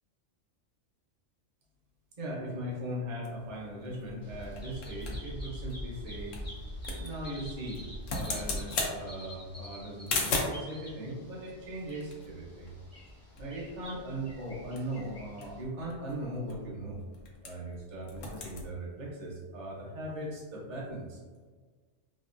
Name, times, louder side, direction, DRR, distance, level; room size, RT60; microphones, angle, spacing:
voice 1, 2.2-6.4 7.0-7.8 8.1-12.7 13.4-17.0 17.4-21.2, right 1 dB, 45° right, -4 dB, 0.7 m, -39 dB
sound 1, 3.2-10.7 11.5-13.1 13.4-13.5 13.8-14.1 14.5-17.8 18.0-18.7, left 3 dB, 85° left, 1.0 m, -38 dB
Bird vocalization bird call bird song, 4.2-15.6, equal, 20° left, 0.5 m, -45 dB
3.0 x 2.3 x 2.4 m, 1.4 s
omnidirectional pair, 1.3 m